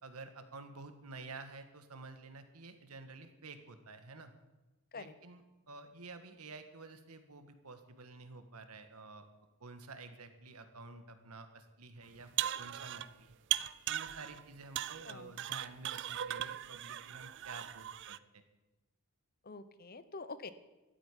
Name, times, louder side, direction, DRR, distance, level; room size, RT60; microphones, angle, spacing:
voice 1, 0.0-4.3 4.9-9.3 9.6-13.4 13.9-18.4, right 3 dB, 90° right, 8 dB, 1.7 m, -51 dB
sound 1, 12.1-13.1 13.5-14.4 14.7-18.2, right 12 dB, 55° right, 0.4 m, -38 dB
voice 2, 15.0-15.4 19.4-20.5, left 3 dB, 45° left, 13 dB, 0.9 m, -46 dB
14.0 x 8.6 x 10.0 m, 1.1 s
head